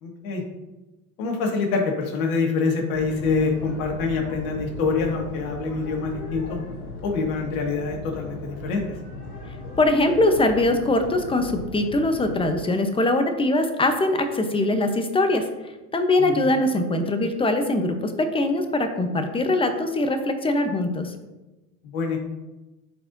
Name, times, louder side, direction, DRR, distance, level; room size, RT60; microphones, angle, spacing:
voice 1, 0.0-0.4 1.2-6.6 7.0-9.0 16.2-16.5 21.9-22.2, left 4 dB, 70° left, 1 dB, 1.8 m, -25 dB
sound 1, 2.9-12.6, left 1 dB, 90° left, 1.5 m, -37 dB
voice 2, 9.8-15.5 15.9-21.1, left 2 dB, 10° left, 6 dB, 0.8 m, -22 dB
12.0 x 4.2 x 2.7 m, 1.1 s
hypercardioid pair, 90°, 44 cm